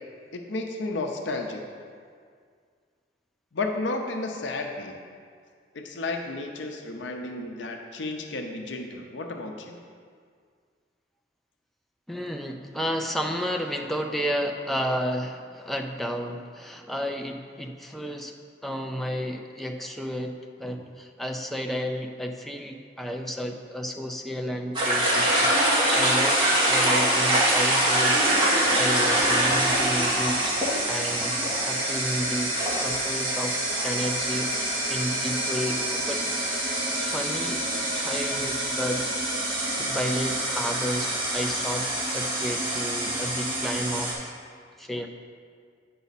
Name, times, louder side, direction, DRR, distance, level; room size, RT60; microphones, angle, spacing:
voice 1, 0.3-1.6 3.5-5.0 5.7-9.8, left 2 dB, 75° left, 3 dB, 0.7 m, -32 dB
voice 2, 12.1-18.3 18.6-25.5 25.9-26.4 26.7-30.4 30.9-32.5 32.8-36.2 37.0-37.7 37.9-44.3 44.8-45.1, equal, ahead, 3 dB, 0.4 m, -32 dB
sound 1, 24.7-44.1, right 1 dB, 25° right, 2.2 m, -25 dB
9.2 x 5.5 x 4.1 m, 2.1 s
head